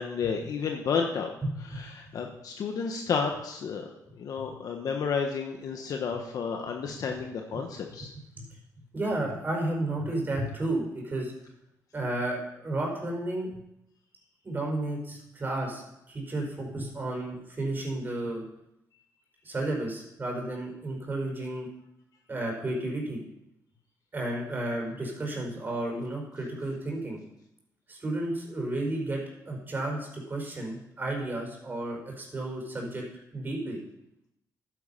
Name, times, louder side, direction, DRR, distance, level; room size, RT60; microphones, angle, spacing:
voice 1, 0.0-1.3 1.6-3.9 4.1-8.1, left 6 dB, 65° left, 3 dB, 1.1 m, -31 dB
voice 2, 1.5-1.8 8.4-8.5 8.9-11.3 11.9-13.5 14.4-18.4 19.4-21.7 22.3-23.2 24.1-27.2 27.9-29.2 29.5-33.0 33.3-33.8, right 1 dB, 30° right, 0 dB, 4.6 m, -32 dB
11.5 x 9.6 x 5.6 m, 0.83 s
cardioid pair, 100°, 7 cm